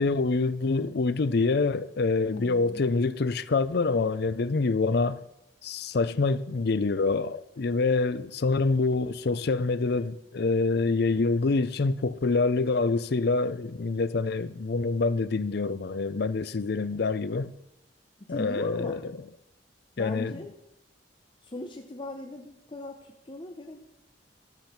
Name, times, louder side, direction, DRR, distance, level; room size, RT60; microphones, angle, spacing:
voice 1, 0.0-5.2 5.6-17.5 18.3-19.2 20.0-20.3, left 3 dB, 60° left, 0.5 m, -26 dB
voice 2, 2.2-2.8 18.2-19.0 20.0-20.5 21.4-23.8, left 2 dB, 30° left, 0.8 m, -39 dB
13.5 x 7.4 x 5.9 m
head